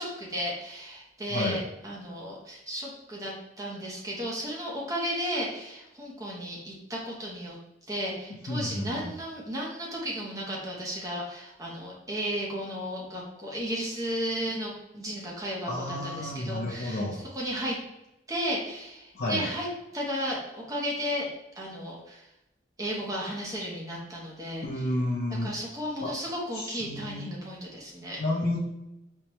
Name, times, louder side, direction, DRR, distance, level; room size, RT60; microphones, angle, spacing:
voice 1, 0.0-7.6 7.9-17.0 17.3-17.8 18.3-19.7 19.9-21.3 21.6-22.2 22.8-24.9 25.4-28.2, equal, 20° right, -3 dB, 0.7 m, -34 dB
voice 2, 8.5-9.1 15.7-17.2 19.1-19.4 24.6-25.5 26.0-26.1 26.5-27.3 28.2-28.6, left 1 dB, 55° left, -6 dB, 0.6 m, -31 dB
4.4 x 2.1 x 2.8 m, 0.91 s
head